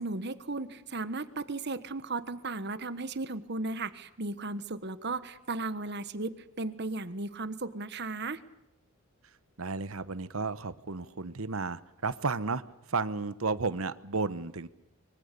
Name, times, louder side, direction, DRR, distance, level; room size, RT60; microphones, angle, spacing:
voice 1, 0.0-8.4, right 3 dB, 55° right, 13 dB, 1.4 m, -35 dB
voice 2, 9.6-12.6 12.9-14.7, right 4 dB, 85° right, 14 dB, 1.1 m, -33 dB
25.0 x 24.0 x 6.9 m, 0.84 s
head